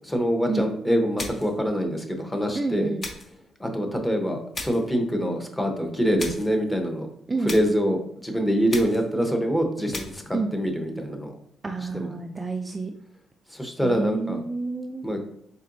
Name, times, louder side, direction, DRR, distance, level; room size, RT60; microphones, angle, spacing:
voice 1, 0.0-2.9 3.6-7.1 7.4-11.4 11.9-12.1 13.5-14.4 15.0-15.2, equal, 10° left, 4 dB, 0.8 m, -25 dB
sound 1, 1.2-1.6 3.0-3.4 4.5-4.9 6.2-6.6 7.5-7.8 8.7-9.1 9.9-10.3, left 3 dB, 40° left, 0.9 m, -36 dB
voice 2, 2.5-3.1 7.3-7.6 10.3-10.5 11.6-12.9 13.8-15.1, right 3 dB, 25° right, 5 dB, 0.3 m, -29 dB
4.1 x 3.7 x 2.6 m, 0.69 s
cardioid pair, 90°, 0 cm